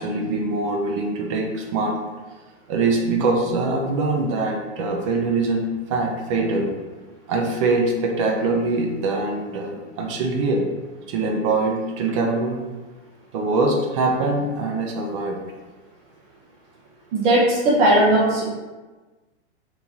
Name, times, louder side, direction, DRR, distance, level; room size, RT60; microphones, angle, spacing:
voice 1, 0.0-2.0 2.7-6.7 7.3-10.7 11.1-12.6 13.3-15.4, right 3 dB, 30° right, 1 dB, 0.4 m, -23 dB
voice 2, 17.1-18.5, right 1 dB, 45° right, -6 dB, 0.8 m, -17 dB
2.9 x 2.8 x 3.6 m, 1.2 s
hypercardioid pair, 145°, 35 cm